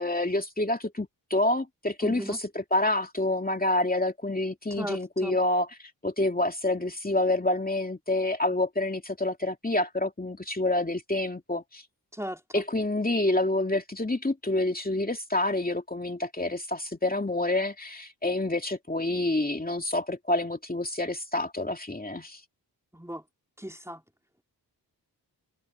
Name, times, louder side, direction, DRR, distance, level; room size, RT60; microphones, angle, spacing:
voice 1, 0.0-11.8 12.5-22.4, left 2 dB, 20° left, 2.7 m, -28 dB
voice 2, 2.0-2.4 4.8-5.4 12.2-12.6 22.9-23.2 23.6-24.0, right 1 dB, 5° right, 2.9 m, -36 dB
cardioid pair, 50°, 43 cm